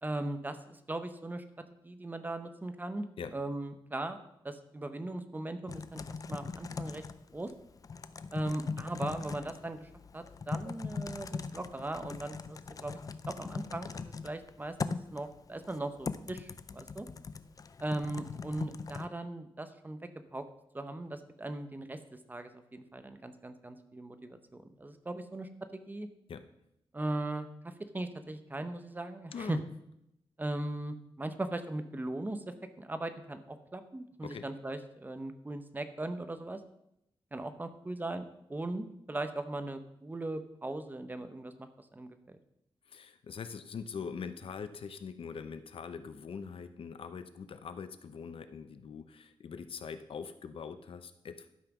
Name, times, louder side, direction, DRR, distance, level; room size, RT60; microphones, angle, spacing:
voice 1, 0.0-1.4 1.8-3.0 3.3-4.2 4.4-6.0 6.3-7.0 7.3-7.5 8.3-13.0 13.3-17.1 17.8-20.0 20.3-20.4 20.7-22.0 22.3-26.1 26.9-29.6 30.4-36.6 37.3-42.4, right 2 dB, 20° right, 9 dB, 0.8 m, -39 dB
Typing, 5.7-19.1, left 5 dB, 40° left, 0.4 m, -40 dB
voice 2, 29.3-29.6 34.2-34.5 42.9-51.5, left 6 dB, 70° left, 11 dB, 0.7 m, -43 dB
12.5 x 5.8 x 6.0 m, 0.80 s
wide cardioid pair, 155°, 10 cm